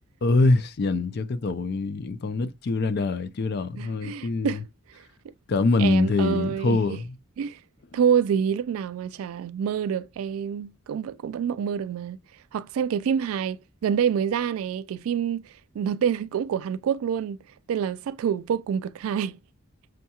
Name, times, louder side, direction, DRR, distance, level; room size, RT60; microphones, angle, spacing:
voice 1, 0.2-4.6 5.5-7.2, left 3 dB, 50° left, 0.4 m, -24 dB
voice 2, 3.8-4.6 5.8-7.0 7.4-7.6 7.9-12.2 12.5-15.4 15.8-17.4 17.7-19.4, right 8 dB, 85° right, 0.3 m, -27 dB
6.3 x 2.3 x 2.8 m
head